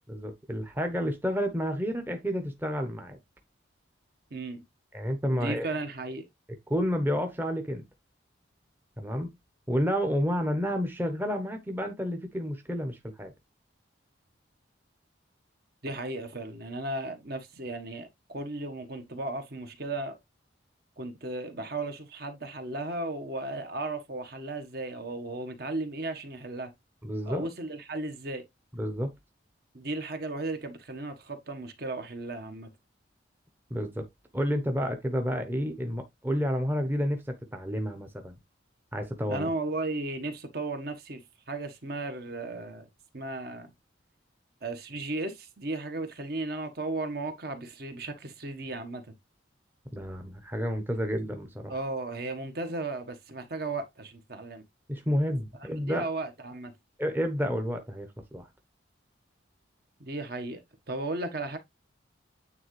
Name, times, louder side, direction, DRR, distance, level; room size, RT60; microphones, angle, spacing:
voice 1, 0.1-3.2 4.9-5.7 6.7-7.8 9.0-9.3 9.7-13.3 27.0-27.5 28.8-29.1 33.7-34.0 34.3-38.4 38.9-39.5 49.9-51.7 54.9-56.0 57.0-58.1 58.3-58.5, equal, 10° right, 0.8 m, -30 dB
voice 2, 4.3-4.6 5.3-6.3 15.8-20.2 21.0-26.7 27.2-28.5 29.7-32.7 39.3-41.2 41.5-42.9 43.1-43.7 44.6-49.1 51.7-54.6 55.9-56.7 60.0-60.6 60.9-61.6, right 2 dB, 50° right, 1.3 m, -35 dB
9.1 x 3.8 x 3.2 m
head